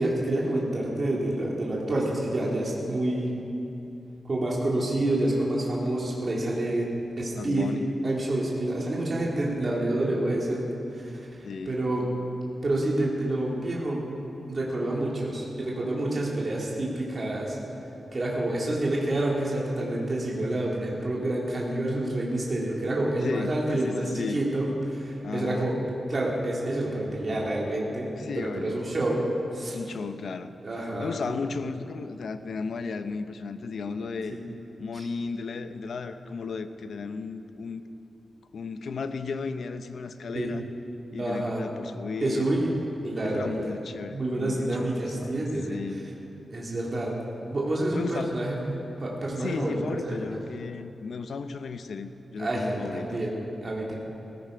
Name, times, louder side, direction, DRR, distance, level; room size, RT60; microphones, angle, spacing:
voice 1, 0.0-3.3 4.2-6.9 7.2-7.7 8.0-10.6 10.9-12.0 12.6-14.0 14.5-17.6 18.1-25.7 26.1-29.3 29.5-29.8 30.6-31.4 34.3-34.4 34.9-35.0 40.3-40.5 41.2-41.6 42.2-42.7 43.0-43.7 44.1-45.8 46.5-47.1 47.5-48.7 49.0-50.1 52.4-53.3 53.6-54.0, right 1 dB, 35° right, -4 dB, 2.4 m, -28 dB
voice 2, 7.4-7.9 11.4-11.8 23.2-24.4 25.2-25.7 28.2-29.0 29.7-30.6 31.0-34.4 34.8-37.8 38.5-40.6 41.1-42.5 43.2-45.3 45.6-46.1 47.9-48.4 49.3-53.2, left 4 dB, 70° left, 9 dB, 0.7 m, -34 dB
16.5 x 14.5 x 5.1 m, 2.9 s
wide cardioid pair, 165°, 0 cm